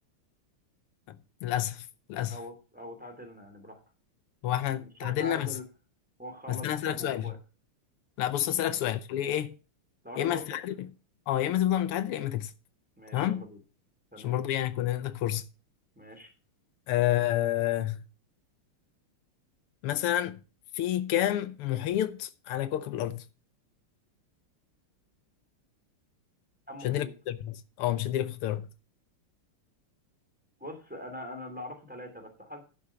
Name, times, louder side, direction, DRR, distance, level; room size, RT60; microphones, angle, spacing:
voice 1, 1.4-2.4 4.4-5.6 6.5-7.3 8.2-9.6 10.2-10.9 11.3-12.5 13.1-13.4 14.2-15.5 16.9-18.1 19.8-20.4 20.7-23.3 26.8-28.7, left 12 dB, 90° left, 1.7 m, -29 dB
voice 2, 2.3-3.8 4.7-5.6 6.2-7.4 10.0-10.6 13.0-13.6 14.1-14.4 16.0-16.3 26.7-27.1 30.6-32.6, left 1 dB, 5° right, 2.7 m, -43 dB
11.0 x 6.4 x 5.6 m
omnidirectional pair, 2.4 m